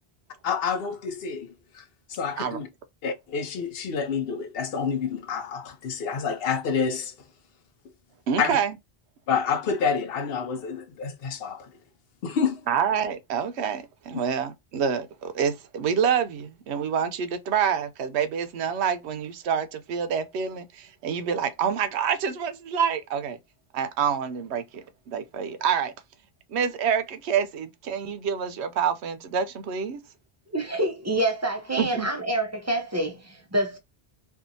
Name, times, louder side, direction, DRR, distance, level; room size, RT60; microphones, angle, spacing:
voice 1, 0.4-1.5 1.7-2.7 3.0-7.1 8.4-8.6 9.3-11.7 12.2-12.6, left 6 dB, 70° left, 0.8 m, -28 dB
voice 2, 8.3-8.8 12.7-23.4 23.7-25.9 26.5-30.0 31.8-32.1, right 7 dB, 90° right, 0.8 m, -27 dB
voice 3, 30.5-33.8, right 1 dB, 25° right, 0.4 m, -27 dB
2.6 x 2.4 x 2.6 m
omnidirectional pair, 1.1 m